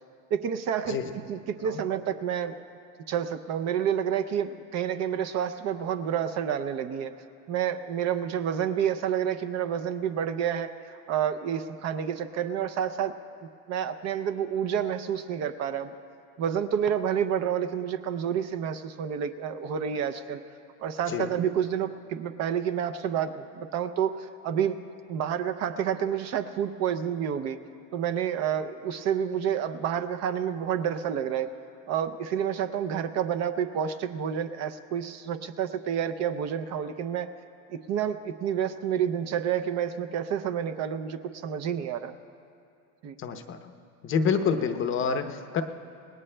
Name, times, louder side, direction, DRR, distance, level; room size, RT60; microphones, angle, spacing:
voice 1, 0.3-1.0 1.3-2.6 3.1-7.1 7.5-13.2 13.7-15.9 16.4-20.4 20.8-24.8 25.1-27.6 27.9-31.5 31.9-37.3 37.7-42.1 43.0-43.2, right 8 dB, 40° right, 10 dB, 0.6 m, -29 dB
voice 2, 43.2-43.6 44.0-45.6, left 6 dB, 30° left, 7 dB, 0.7 m, -27 dB
26.5 x 20.0 x 2.2 m, 2.5 s
supercardioid pair, 140°, 41 cm